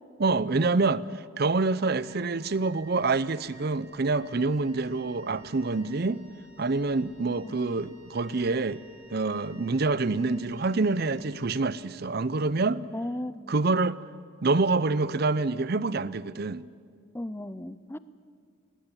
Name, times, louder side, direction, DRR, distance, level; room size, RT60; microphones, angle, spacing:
voice 1, 0.2-1.0 1.4-6.2 6.6-8.8 9.1-12.8 13.5-14.0 14.4-16.6, right 3 dB, 45° right, 0.6 m, -26 dB
Wind instrument woodwind instrument, 2.0-12.1, equal, 80° right, 5.4 m, -56 dB
voice 2, 12.9-13.6 17.1-18.0, left 1 dB, 10° left, 0.5 m, -35 dB
20.5 x 18.0 x 9.0 m
head